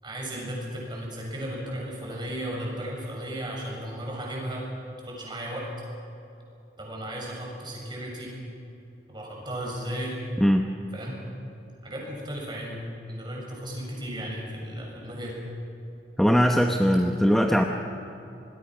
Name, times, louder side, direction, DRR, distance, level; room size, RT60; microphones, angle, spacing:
voice 1, 0.0-4.7 5.1-5.7 6.8-8.3 9.1-10.2 10.9-11.2 11.8-12.8 13.1-15.4, right 1 dB, 25° right, -2 dB, 6.9 m, -35 dB
voice 2, 10.4-10.7 16.2-17.6, equal, ahead, 3 dB, 0.9 m, -20 dB
27.0 x 21.0 x 6.2 m, 2.9 s
head